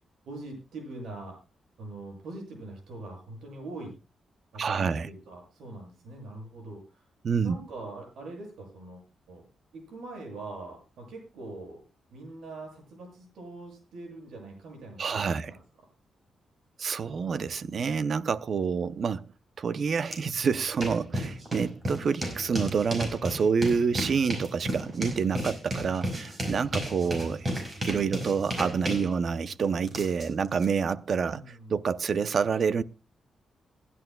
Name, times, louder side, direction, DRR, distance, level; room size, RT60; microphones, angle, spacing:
voice 1, 0.3-1.4 1.8-4.0 4.5-7.1 7.4-9.4 9.7-11.8 12.1-15.6 27.0-27.3 31.3-31.7, right 2 dB, 80° right, 7.2 m, -43 dB
voice 2, 4.6-5.1 7.2-7.6 15.0-15.5 16.8-19.3 19.6-27.4 27.8-32.8, right 6 dB, 45° right, 0.6 m, -28 dB
sound 1, 20.1-20.2 20.5-30.7, right 1 dB, 25° right, 4.9 m, -34 dB
27.0 x 11.0 x 2.2 m
wide cardioid pair, 160°, 0 cm